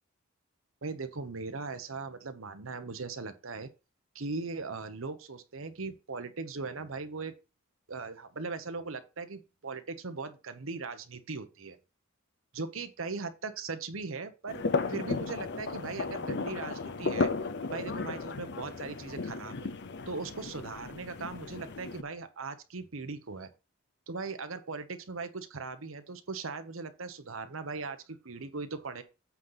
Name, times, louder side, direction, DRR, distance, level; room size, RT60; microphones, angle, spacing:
voice 1, 0.8-3.7 4.1-7.3 7.9-11.8 12.5-17.3 17.7-19.7 20.1-23.5 24.1-29.0, right 4 dB, 75° right, 1.0 m, -39 dB
sound 1, 14.5-22.0, left 3 dB, 60° left, 0.7 m, -34 dB
8.4 x 4.0 x 5.7 m
head